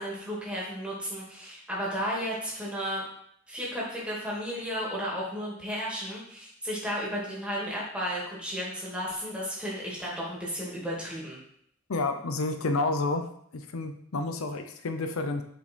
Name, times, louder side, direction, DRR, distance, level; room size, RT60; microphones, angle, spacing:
voice 1, 0.0-3.0 3.5-11.4, equal, 5° right, -5 dB, 2.4 m, -33 dB
voice 2, 11.9-13.3 13.5-15.4, left 3 dB, 80° left, 7 dB, 0.7 m, -30 dB
6.7 x 5.1 x 4.5 m, 0.68 s
head